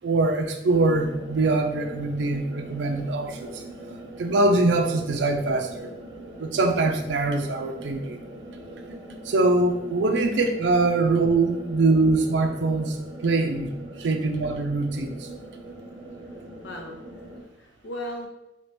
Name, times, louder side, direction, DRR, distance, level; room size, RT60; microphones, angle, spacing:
voice 1, 0.0-3.6 4.2-5.9 6.4-8.2 9.2-13.0 13.2-15.3, right 2 dB, 80° right, 5 dB, 0.4 m, -23 dB
sound 1, 0.7-17.4, right 1 dB, 20° right, 0.5 m, -41 dB
voice 2, 16.2-18.3, left 1 dB, 85° left, 1 dB, 0.7 m, -39 dB
2.9 x 2.9 x 3.4 m, 0.92 s
head